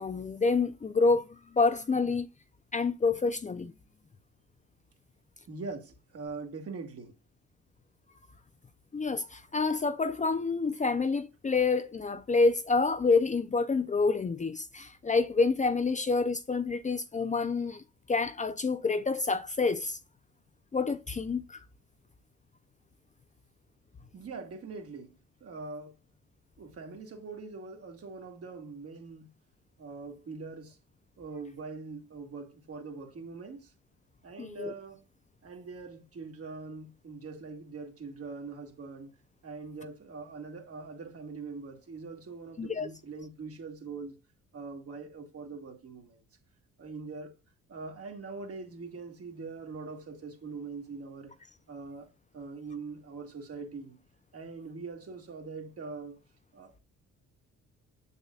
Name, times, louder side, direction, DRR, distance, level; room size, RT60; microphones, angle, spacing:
voice 1, 0.0-2.3 2.7-3.7 8.9-17.8 18.1-20.0 20.7-21.6 34.4-34.7 42.6-42.9, left 4 dB, 25° left, 0.5 m, -28 dB
voice 2, 5.5-7.1 24.1-25.1 25.4-26.0 26.6-29.3 29.8-30.8 31.2-33.7 34.2-35.1 35.4-39.1 39.4-44.2 44.5-46.2 46.8-47.4 47.7-51.3 51.7-52.1 52.3-54.0 54.3-56.2 56.5-56.7, right 4 dB, 50° right, 2.0 m, -42 dB
7.1 x 6.9 x 2.4 m
cardioid pair, 90°, 30 cm